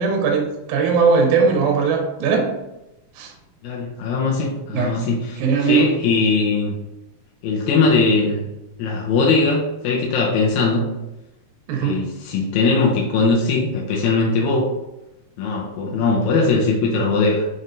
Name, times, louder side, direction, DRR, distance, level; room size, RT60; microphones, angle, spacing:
voice 1, 0.0-2.5 3.2-3.3 4.7-5.0 5.4-5.9 6.3-6.4 11.7-12.0, right 5 dB, 75° right, 2 dB, 2.0 m, -19 dB
voice 2, 3.6-6.8 7.4-8.5 8.8-10.9 11.8-14.7 15.4-17.5, left 3 dB, 75° left, -3 dB, 1.9 m, -20 dB
5.4 x 3.2 x 2.6 m, 0.95 s
omnidirectional pair, 3.7 m